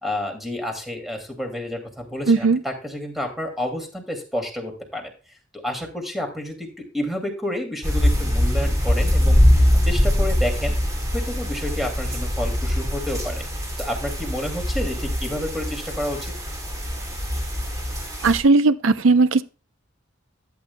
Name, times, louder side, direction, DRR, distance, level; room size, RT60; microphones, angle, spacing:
voice 1, 0.0-5.1 5.6-6.7 6.9-9.4 9.8-10.8 11.1-13.4 13.8-16.3, left 1 dB, ahead, 2.4 m, -29 dB
voice 2, 2.3-2.6 18.2-19.4, right 3 dB, 75° right, 0.6 m, -17 dB
sound 1, 7.8-18.4, equal, 20° right, 2.6 m, -22 dB
13.5 x 8.8 x 2.2 m
head